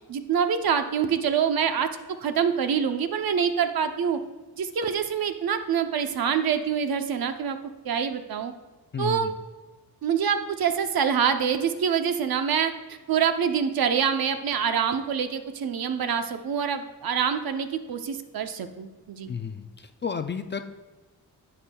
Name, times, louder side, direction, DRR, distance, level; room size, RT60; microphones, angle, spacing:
voice 1, 0.1-4.2 4.6-7.6 7.8-8.5 9.0-9.3 10.0-19.3, right 7 dB, 65° right, 8 dB, 0.7 m, -26 dB
voice 2, 8.9-9.3 19.3-20.7, left 6 dB, 30° left, 8 dB, 0.4 m, -32 dB
11.5 x 8.0 x 2.3 m, 1.3 s
wide cardioid pair, 115°, 39 cm